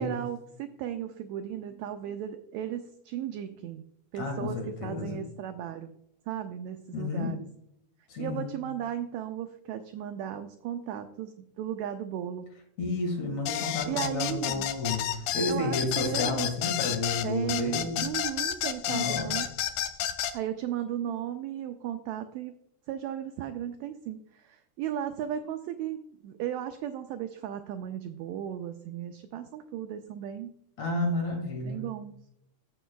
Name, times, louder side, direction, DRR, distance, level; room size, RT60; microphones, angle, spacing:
voice 1, 0.0-3.8 4.1-5.9 6.3-7.4 8.2-12.5 13.9-14.7 15.5-16.5 17.2-19.5 20.3-22.6 22.9-30.5 31.6-32.1, right 10 dB, 85° right, 8 dB, 1.6 m, -35 dB
voice 2, 4.1-5.2 6.9-7.4 8.1-8.6 12.8-15.0 15.3-18.0 18.9-19.4 30.8-31.8, left 2 dB, 60° left, 3 dB, 2.9 m, -31 dB
sound 1, 13.5-20.4, left 11 dB, 80° left, 2.1 m, -31 dB
14.0 x 6.9 x 2.3 m, 0.76 s
omnidirectional pair, 3.7 m